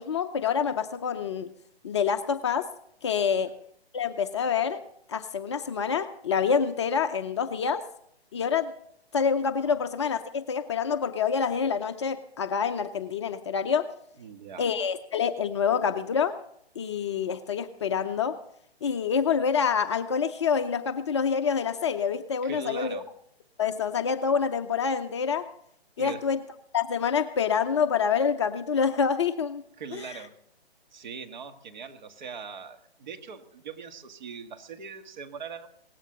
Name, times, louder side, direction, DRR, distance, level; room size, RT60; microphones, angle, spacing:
voice 1, 0.0-1.5 1.8-2.7 3.0-3.5 3.9-4.8 5.1-7.8 8.3-8.7 9.1-13.9 14.6-16.4 16.8-18.4 18.8-23.0 23.6-25.5 26.0-26.4 26.7-29.6 29.9-30.2, left 6 dB, 25° left, 9 dB, 0.6 m, -27 dB
voice 2, 14.2-14.7 22.4-23.1 26.0-26.2 29.8-30.3 30.9-35.7, right 5 dB, 45° right, 6 dB, 1.8 m, -41 dB
18.5 x 16.0 x 4.0 m, 0.68 s
figure-of-eight pair, 145°, 32 cm